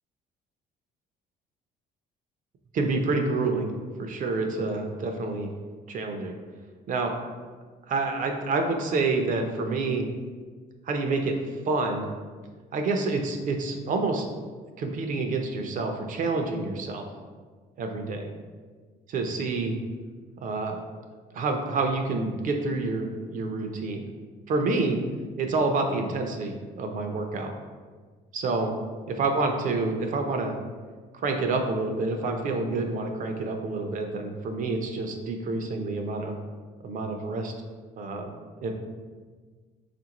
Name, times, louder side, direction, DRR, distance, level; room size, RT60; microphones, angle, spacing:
voice 1, 2.7-3.7 4.0-5.5 5.9-6.3 6.9-7.2 7.9-10.1 10.8-11.4 11.7-12.1 12.7-14.3 14.8-17.1 17.8-18.3 19.1-19.7 20.4-20.8 21.3-24.0 24.5-25.0 25.4-27.5 28.3-28.7 29.1-30.5 31.1-36.4 36.8-37.5 38.0-38.3 38.6-38.7, right 3 dB, 50° right, 4 dB, 0.5 m, -28 dB
4.8 x 2.5 x 2.9 m, 1.5 s
cardioid pair, 110°, 17 cm